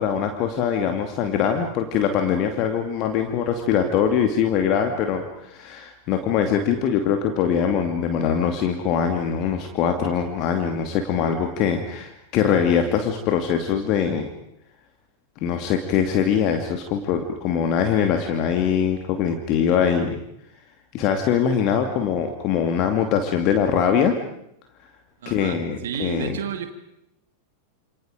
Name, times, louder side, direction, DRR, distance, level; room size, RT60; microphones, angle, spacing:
voice 1, 0.0-14.3 15.4-20.2 20.9-24.2 25.3-26.3, left 7 dB, 40° left, 5 dB, 2.5 m, -22 dB
voice 2, 25.2-26.7, right 8 dB, 60° right, 7 dB, 2.3 m, -31 dB
28.5 x 28.5 x 5.1 m, 0.78 s
figure-of-eight pair, 90°, 0 cm